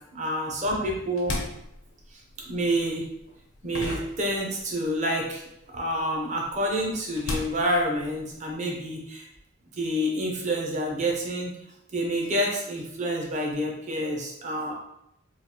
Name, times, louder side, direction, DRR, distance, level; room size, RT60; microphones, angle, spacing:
voice 1, 0.1-1.4 2.1-3.1 3.6-5.4 5.7-9.3 9.7-11.6 11.9-14.7, equal, 35° right, -1 dB, 0.6 m, -28 dB
sound 1, 0.9-5.0 5.2-8.5, left 1 dB, 85° left, 0.7 m, -37 dB
3.8 x 2.3 x 2.9 m, 0.79 s
head